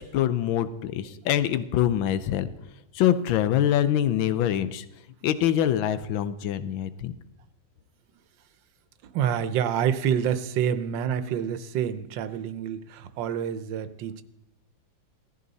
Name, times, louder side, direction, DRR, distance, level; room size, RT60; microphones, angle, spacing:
voice 1, 0.0-2.5 2.9-4.8 5.2-7.1, left 11 dB, 90° left, 13 dB, 1.5 m, -24 dB
voice 2, 9.0-14.2, right 9 dB, 75° right, 13 dB, 1.5 m, -27 dB
16.5 x 14.0 x 4.1 m, 0.83 s
omnidirectional pair, 2.1 m